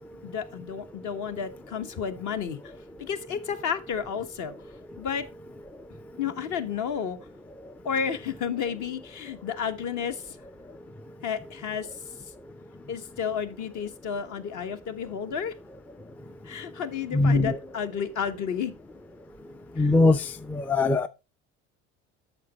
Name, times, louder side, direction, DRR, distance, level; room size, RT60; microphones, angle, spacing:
voice 1, 0.2-2.7 3.0-4.5 5.0-5.3 6.2-7.2 7.8-10.4 11.2-11.9 12.9-15.5 16.4-18.7 19.8-19.9, left 7 dB, 55° left, 1.3 m, -31 dB
voice 2, 17.1-17.5 19.8-20.2 20.5-21.1, left 2 dB, 5° left, 0.3 m, -21 dB
8.3 x 6.4 x 4.2 m
supercardioid pair, 85°, 35 cm